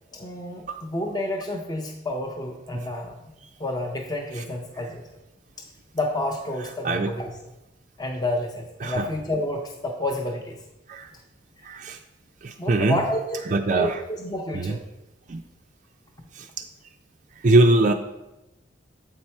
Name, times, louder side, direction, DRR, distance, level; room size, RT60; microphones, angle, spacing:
voice 1, 0.1-3.3 3.6-5.0 5.6-5.7 5.9-7.3 8.0-10.6 11.6-11.7 12.6-14.8, left 1 dB, 20° left, 2 dB, 0.5 m, -29 dB
voice 2, 6.7-7.1 8.8-9.2 10.9-11.1 11.6-12.0 12.4-14.0 14.5-14.8 15.3-15.4 16.4-16.5 17.4-17.9, right 2 dB, 40° right, 5 dB, 0.3 m, -23 dB
7.6 x 4.6 x 4.3 m, 0.95 s
head